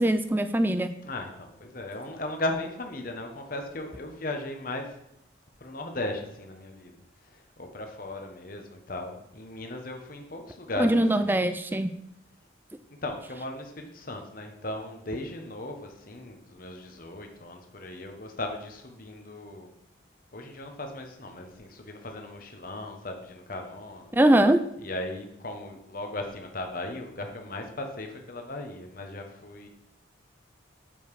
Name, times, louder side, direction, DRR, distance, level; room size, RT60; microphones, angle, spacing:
voice 1, 0.0-0.9 10.8-11.9 24.1-24.6, right 1 dB, 10° right, 10 dB, 0.4 m, -22 dB
voice 2, 1.0-4.9 5.6-6.9 7.2-11.3 12.9-19.7 20.3-24.2 24.8-29.7, left 2 dB, 45° left, 3 dB, 1.1 m, -37 dB
7.2 x 5.3 x 4.8 m, 0.81 s
head